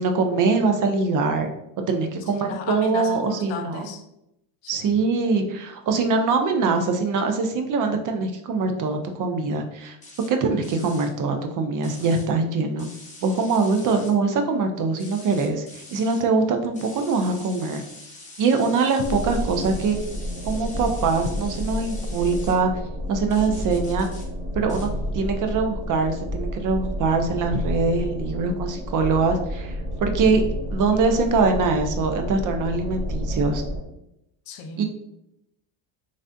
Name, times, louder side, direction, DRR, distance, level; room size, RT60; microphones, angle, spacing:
voice 1, 0.0-1.5 1.9-3.8 4.7-10.0 10.3-12.9 13.2-17.8 18.4-20.0 20.5-22.7 23.1-24.1 24.5-24.9 25.1-30.4 30.7-33.6 34.8-34.9, right 4 dB, 45° right, 6 dB, 0.4 m, -23 dB
voice 2, 2.3-4.0 4.6-5.0 34.5-34.8, left 5 dB, 70° left, 6 dB, 0.7 m, -36 dB
sound 1, 10.0-10.3 10.6-11.1 11.8-12.3 12.8-14.1 15.0-16.2 16.7-22.6 23.3-24.3 24.7-24.9, left 2 dB, 15° left, 0.8 m, -44 dB
sound 2, 19.0-33.8, equal, 10° right, 1.1 m, -30 dB
3.2 x 2.5 x 2.5 m, 0.82 s
supercardioid pair, 95°, 49 cm